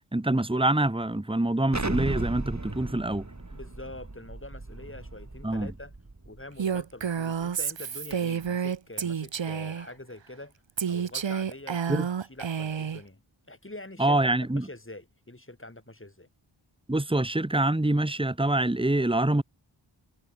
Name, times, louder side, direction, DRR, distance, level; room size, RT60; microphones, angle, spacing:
voice 1, 0.1-3.2 5.4-5.7 11.9-12.1 14.0-14.7 16.9-19.4, right 1 dB, 10° right, 1.7 m, -25 dB
Explosion, 1.7-6.4, right 2 dB, 35° right, 3.9 m, -36 dB
voice 2, 3.5-5.9 6.2-10.5 10.9-13.2 13.5-16.3, left 2 dB, 25° left, 7.7 m, -45 dB
Female speech woman speaking, 6.6-9.9 10.8-13.0, right 7 dB, 65° right, 1.0 m, -30 dB
wide cardioid pair, 60°, 49 cm